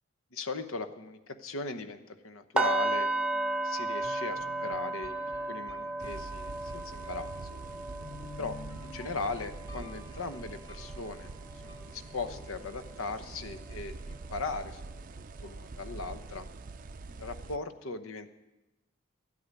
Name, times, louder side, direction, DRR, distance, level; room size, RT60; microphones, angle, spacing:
voice 1, 0.3-5.2 5.5-7.3 8.4-8.6 8.8-11.3 11.6-14.8 15.4-16.5 17.1-18.3, left 3 dB, 75° left, 10 dB, 0.9 m, -38 dB
sound 1, 2.6-12.5 12.8-13.1 13.5-13.7, right 2 dB, 5° right, 0.8 m, -35 dB
sound 2, 4.0-13.9, left 1 dB, 20° left, 1.3 m, -51 dB
sound 3, 6.0-17.6, right 3 dB, 40° right, 0.4 m, -45 dB
12.5 x 8.6 x 9.9 m, 1.0 s
head